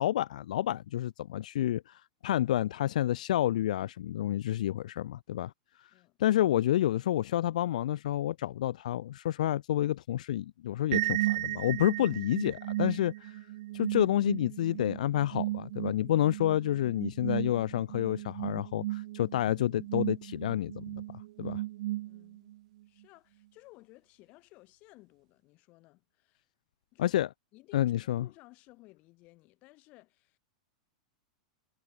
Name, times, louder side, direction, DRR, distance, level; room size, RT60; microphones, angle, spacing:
voice 1, 0.0-5.5 5.8-5.9 6.2-13.4 13.7-21.0 21.4-21.6 27.0-27.3 27.7-28.3, left 12 dB, 75° left, 0.8 m, -29 dB
sound 1, 10.9-22.6, right 16 dB, 55° right, 0.3 m, -35 dB
voice 2, 22.0-22.5 22.8-26.5 26.9-27.2 27.5-30.4, left 21 dB, 35° left, 5.0 m, -58 dB
supercardioid pair, 160°, 4 cm